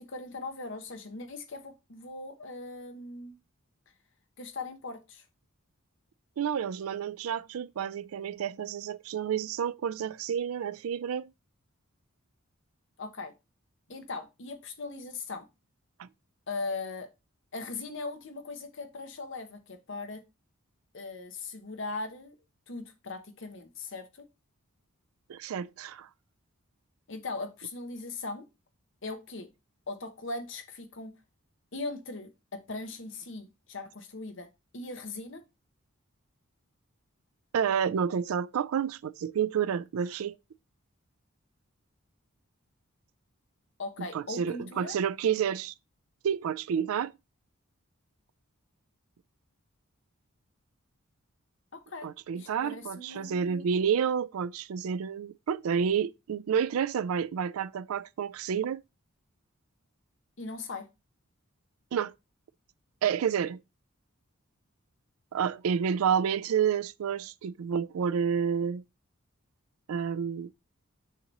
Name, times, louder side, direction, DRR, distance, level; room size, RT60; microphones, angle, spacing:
voice 1, 0.0-3.4 4.4-5.2 13.0-13.3 13.9-15.5 16.5-17.1 17.5-20.2 20.9-22.3 22.7-24.2 27.1-28.5 29.0-29.5 29.9-31.1 31.7-34.5 34.7-35.4 43.8-45.0 51.7-52.1 52.3-53.7 60.4-60.9, left 3 dB, 55° left, 1.1 m, -39 dB
voice 2, 6.4-11.3 16.0-16.1 25.3-26.1 37.5-40.4 44.1-45.7 46.2-47.1 52.0-58.8 61.9-62.1 63.0-63.6 65.3-68.8 69.9-70.5, right 7 dB, 80° right, 0.4 m, -29 dB
6.5 x 3.0 x 5.2 m
head